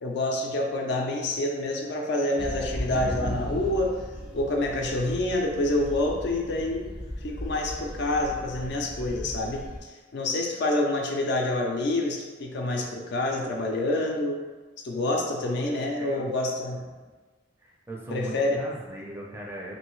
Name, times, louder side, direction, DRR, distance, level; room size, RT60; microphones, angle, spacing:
voice 1, 0.0-4.0 4.3-6.9 7.2-14.4 14.8-16.9 18.1-18.7, left 2 dB, 65° left, 1 dB, 0.5 m, -27 dB
sound 1, 2.4-9.8, equal, 25° left, 0.6 m, -36 dB
voice 2, 15.4-16.3 17.6-19.7, right 1 dB, 10° right, -2 dB, 0.5 m, -39 dB
3.0 x 2.7 x 3.0 m, 1.3 s
head